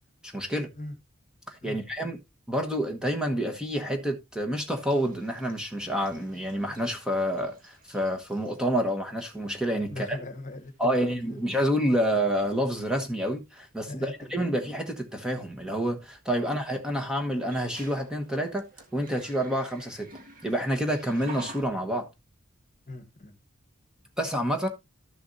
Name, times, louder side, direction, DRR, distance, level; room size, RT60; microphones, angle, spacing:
voice 1, 0.2-0.7 1.5-2.2 2.5-10.2 10.8-18.6 18.9-20.1 20.4-22.1 24.2-24.7, equal, 5° right, 1.1 m, -28 dB
sound 1, 4.7-8.8 9.2-9.6 10.6-10.7 11.1-11.6 11.9-12.2 14.2-14.3 17.3-21.6, right 2 dB, 40° right, 1.8 m, -49 dB
voice 2, 9.8-11.4 13.9-14.5 16.4-16.5 22.9-23.4, left 2 dB, 40° left, 1.3 m, -40 dB
12.5 x 7.0 x 2.6 m
head